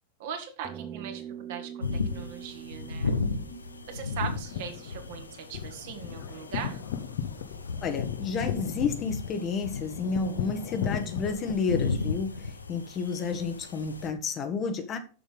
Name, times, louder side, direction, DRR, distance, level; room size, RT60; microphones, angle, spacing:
voice 1, 0.2-3.1 3.9-6.8, right 7 dB, 50° right, 2.0 m, -40 dB
sound 1, 0.6-5.3, right 9 dB, 20° right, 0.9 m, -44 dB
sound 2, 1.8-14.1, left 4 dB, 80° left, 0.9 m, -36 dB
sound 3, 4.3-11.5, left 8 dB, 55° left, 1.0 m, -36 dB
voice 2, 7.8-15.0, left 5 dB, 30° left, 1.2 m, -31 dB
7.1 x 6.9 x 5.3 m
figure-of-eight pair, 90°, 0 cm